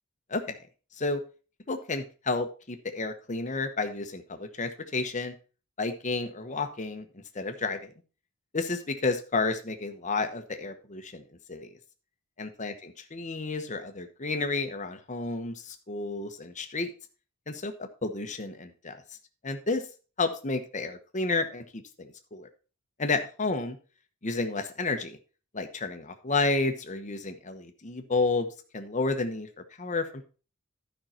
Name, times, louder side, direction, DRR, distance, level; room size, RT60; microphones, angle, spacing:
voice 1, 1.7-5.3 5.8-7.9 8.5-11.7 12.4-16.9 17.5-19.0 19.4-19.8 20.2-22.5 23.0-23.8 24.2-25.2 25.5-29.5 29.8-30.2, left 3 dB, 35° left, 6 dB, 1.0 m, -31 dB
12.0 x 5.5 x 4.3 m, 0.35 s
head